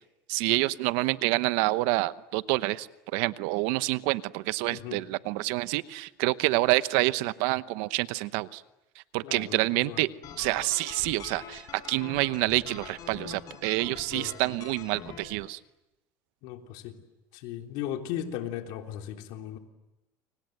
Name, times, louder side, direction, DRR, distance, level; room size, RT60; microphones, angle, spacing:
voice 1, 0.3-2.9 3.1-8.6 9.1-10.1 10.4-15.6, right 20 dB, 80° right, 15 dB, 1.0 m, -27 dB
voice 2, 9.2-9.6 9.8-10.0 14.1-14.3 16.4-16.9 17.3-19.6, left 11 dB, 70° left, 4 dB, 3.4 m, -36 dB
sound 1, 10.2-15.2, left 7 dB, 50° left, 6.6 m, -44 dB
29.5 x 25.5 x 7.9 m, 0.99 s
supercardioid pair, 115°, 8 cm